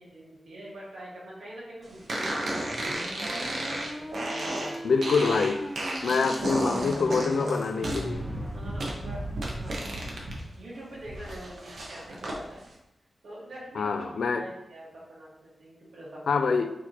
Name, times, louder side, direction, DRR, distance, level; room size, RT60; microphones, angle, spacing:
voice 1, 0.0-2.6 3.2-4.8 6.0-6.4 8.5-10.1 10.5-12.6 13.2-16.6, right 1 dB, 85° right, -5 dB, 1.5 m, -44 dB
sound 1, 2.1-10.4 10.7-12.4, right 1 dB, 65° right, 0.9 m, -33 dB
sound 2, 2.6-8.6, equal, 5° left, 0.4 m, -39 dB
voice 2, 4.8-5.6 6.0-8.3 13.8-14.4 16.3-16.7, left 4 dB, 80° left, 9 dB, 0.3 m, -25 dB
5.8 x 3.0 x 2.9 m, 0.88 s
wide cardioid pair, 150°, 0 cm